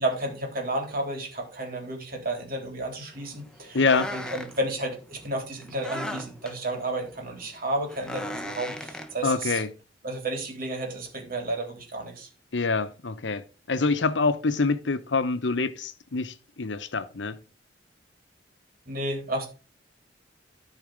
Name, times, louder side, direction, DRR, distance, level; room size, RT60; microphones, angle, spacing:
voice 1, 0.0-3.8 4.1-9.6 10.0-12.3 18.9-19.5, right 1 dB, 55° right, 3.6 m, -32 dB
sound 1, 3.1-9.6, equal, 5° left, 1.2 m, -38 dB
voice 2, 3.7-4.1 9.2-9.7 12.5-17.4, left 4 dB, 80° left, 0.9 m, -26 dB
13.0 x 4.9 x 5.0 m
head